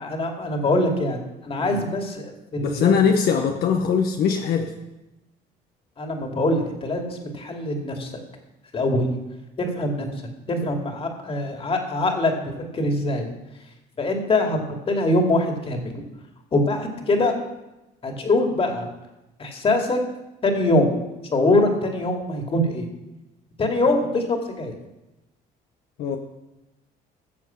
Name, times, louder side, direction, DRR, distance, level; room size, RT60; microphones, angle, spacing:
voice 1, 0.0-2.9 6.0-8.1 8.7-9.1 9.6-10.1 10.5-13.3 14.0-16.0 16.5-17.4 18.0-18.9 19.4-20.0 20.4-20.9 21.3-22.9 23.6-24.8, left 2 dB, 35° left, 3 dB, 2.4 m, -23 dB
voice 2, 2.6-4.7 26.0-26.2, left 6 dB, 65° left, 3 dB, 1.0 m, -21 dB
14.5 x 7.3 x 5.8 m, 0.99 s
cardioid pair, 110°, 17 cm